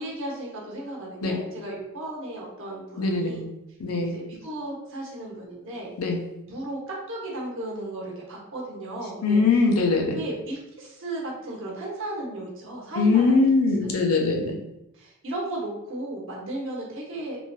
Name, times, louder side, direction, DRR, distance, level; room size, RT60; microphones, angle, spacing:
voice 1, 0.0-3.5 4.0-5.9 6.4-9.4 10.1-13.3 14.9-17.4, right 1 dB, 60° right, -3 dB, 0.9 m, -35 dB
voice 2, 3.0-3.4 3.8-4.1 6.0-6.2 9.2-10.2 13.0-14.6, left 3 dB, 80° left, 2 dB, 0.6 m, -21 dB
3.2 x 2.5 x 2.2 m, 0.89 s
head